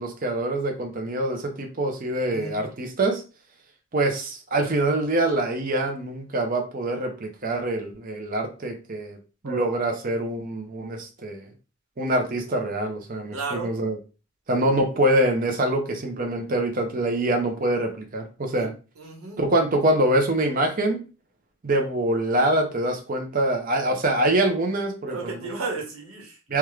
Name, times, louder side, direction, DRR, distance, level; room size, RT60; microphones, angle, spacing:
voice 1, 0.0-3.2 3.9-9.2 9.4-11.5 12.0-14.0 14.5-18.7 19.4-21.0 21.6-25.5 26.5-26.6, right 1 dB, 40° right, 4 dB, 0.6 m, -25 dB
voice 2, 13.3-13.7 18.6-18.7 19.0-19.4 25.1-26.4, right 4 dB, 80° right, -2 dB, 1.2 m, -33 dB
3.5 x 2.3 x 3.1 m, 0.33 s
head